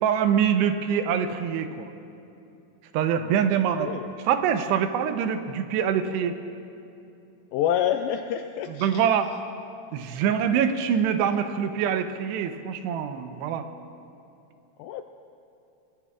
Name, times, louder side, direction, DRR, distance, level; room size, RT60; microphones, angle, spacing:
voice 1, 0.0-1.9 2.9-3.9 4.3-6.3 8.8-9.3 9.9-13.7, right 8 dB, 85° right, 8 dB, 2.9 m, -24 dB
voice 2, 3.8-4.1 7.5-9.1 14.8-15.0, left 10 dB, 85° left, 7 dB, 2.1 m, -27 dB
24.5 x 19.0 x 2.4 m, 2.7 s
omnidirectional pair, 4.7 m